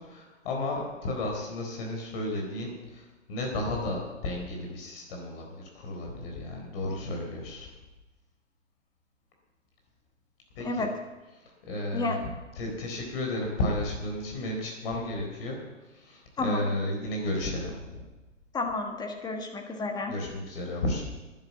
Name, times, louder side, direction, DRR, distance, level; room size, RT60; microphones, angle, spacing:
voice 1, 0.0-7.7 10.6-10.9 11.3-12.2 12.6-18.0 20.1-21.0, left 1 dB, 50° left, 1 dB, 4.2 m, -33 dB
voice 2, 18.5-20.1, left 3 dB, 10° left, 4 dB, 1.5 m, -31 dB
11.5 x 10.5 x 7.3 m, 1.1 s
hypercardioid pair, 125°, 38 cm